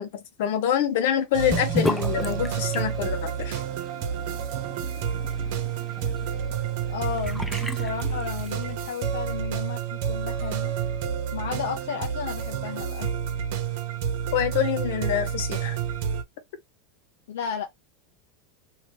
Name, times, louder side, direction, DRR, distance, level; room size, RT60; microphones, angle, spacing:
voice 1, 0.0-3.6 14.3-15.8, left 9 dB, 70° left, 1.0 m, -26 dB
sound 1, 1.3-16.2, right 8 dB, 65° right, 1.0 m, -29 dB
Sink (filling or washing) / Bathtub (filling or washing), 1.5-8.8, left 1 dB, 5° left, 0.4 m, -35 dB
voice 2, 6.9-10.7 11.3-13.1 17.3-17.7, left 8 dB, 85° left, 0.6 m, -33 dB
2.8 x 2.8 x 3.2 m
supercardioid pair, 130°, 0 cm